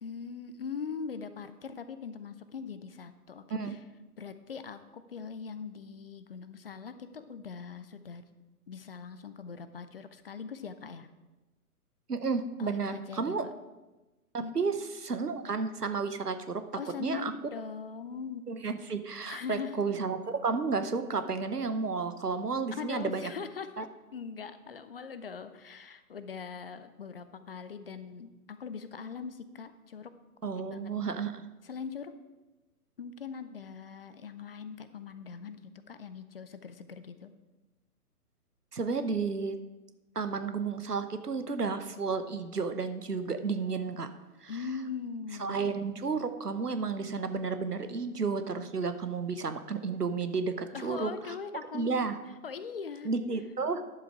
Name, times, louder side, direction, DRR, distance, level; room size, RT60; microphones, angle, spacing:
voice 1, 0.0-3.8 4.2-8.2 8.7-11.1 12.6-13.5 14.4-14.7 16.8-18.5 19.2-19.8 22.8-30.1 30.7-30.8 31.6-32.1 33.0-35.6 35.9-37.3 44.5-45.6 50.7-52.1 52.4-53.1, left 6 dB, 40° left, 12 dB, 0.6 m, -41 dB
voice 2, 12.1-13.4 14.3-14.7 15.0-16.6 17.0-17.3 18.5-23.3 23.8-23.9 30.4-31.4 38.7-39.6 40.1-44.1 44.4-44.5 45.4-51.1 51.7-52.2 53.0-53.8, right 4 dB, 85° right, 10 dB, 1.0 m, -32 dB
10.5 x 7.1 x 4.7 m, 1.1 s
figure-of-eight pair, 130°, 46 cm